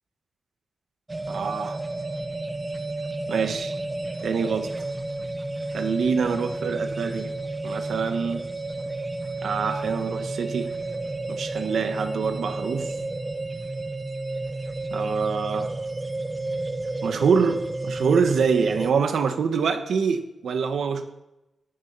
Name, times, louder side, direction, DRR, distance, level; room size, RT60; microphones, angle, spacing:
sound 1, 1.1-18.9, right 2 dB, 25° right, 0.8 m, -31 dB
voice 1, 1.3-1.8 3.3-3.8 4.2-4.7 5.7-7.3 7.6-8.5 9.4-10.7 11.3-13.0 14.9-15.7 17.0-21.0, right 6 dB, 85° right, 7 dB, 1.5 m, -25 dB
17.0 x 11.5 x 4.2 m, 0.94 s
wide cardioid pair, 100°, 0 cm